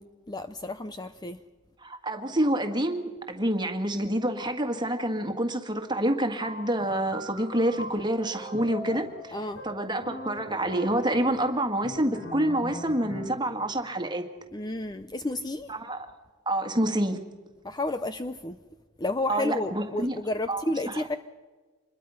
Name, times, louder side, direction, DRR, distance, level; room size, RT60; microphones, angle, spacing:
voice 1, 0.3-1.4 9.3-9.6 14.5-15.7 17.6-18.6 19.0-21.2, left 2 dB, 20° left, 10 dB, 0.6 m, -31 dB
voice 2, 1.8-9.4 9.6-14.2 15.7-16.1 16.5-17.2 19.3-20.2 20.5-20.6 20.9-21.0, right 1 dB, 20° right, 6 dB, 1.9 m, -27 dB
sound 1, 6.4-13.5, left 1 dB, 60° left, 6.1 m, -41 dB
26.5 x 21.5 x 5.7 m, 1.4 s
head